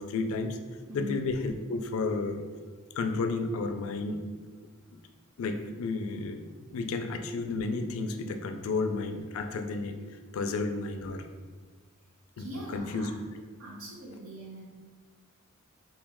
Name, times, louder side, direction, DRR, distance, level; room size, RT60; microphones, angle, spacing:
voice 1, 0.0-0.6 0.9-2.4 2.9-4.2 4.9-5.0 5.4-6.4 6.7-10.0 10.3-11.3 12.4-13.1, left 3 dB, 65° left, 7 dB, 0.3 m, -32 dB
voice 2, 0.7-1.2 12.4-13.2 13.6-14.6, equal, 70° right, -3 dB, 0.9 m, -41 dB
3.0 x 2.8 x 3.5 m, 1.5 s
head